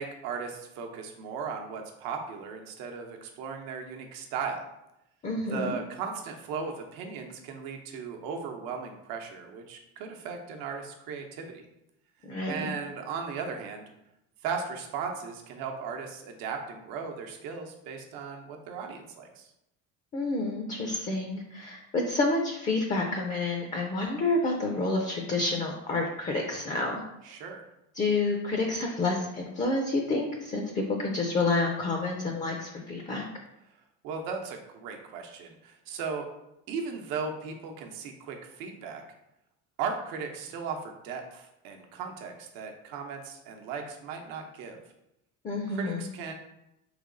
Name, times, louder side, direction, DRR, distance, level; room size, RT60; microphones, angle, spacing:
voice 1, 0.0-4.6 5.5-11.7 12.5-13.9 14.4-19.5 27.2-27.6 34.0-36.3 36.7-39.0 39.8-44.8 45.7-46.3, right 5 dB, 80° right, 3 dB, 0.8 m, -37 dB
voice 2, 5.2-5.8 12.2-12.7 20.1-27.0 28.0-33.3 45.4-46.1, left 2 dB, 25° left, 2 dB, 0.4 m, -29 dB
3.3 x 3.0 x 3.8 m, 0.86 s
cardioid pair, 135°, 34 cm